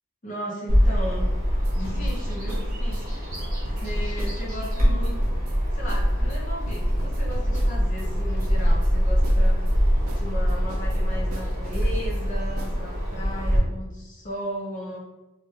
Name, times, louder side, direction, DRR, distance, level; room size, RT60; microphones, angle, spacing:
voice 1, 0.2-1.3 1.7-3.4 3.8-5.2 5.7-9.7 10.2-15.0, equal, 35° left, -2 dB, 0.6 m, -36 dB
Bird vocalization bird call bird song, 0.7-13.6, equal, 45° right, 1.2 m, -24 dB
sound 1, 1.6-4.7 5.0-5.6 5.9-6.0 6.3-8.1 8.4-8.9 9.2-12.2 12.6-12.8, right 1 dB, 80° right, 0.5 m, -42 dB
3.0 x 2.3 x 3.1 m, 1.0 s
head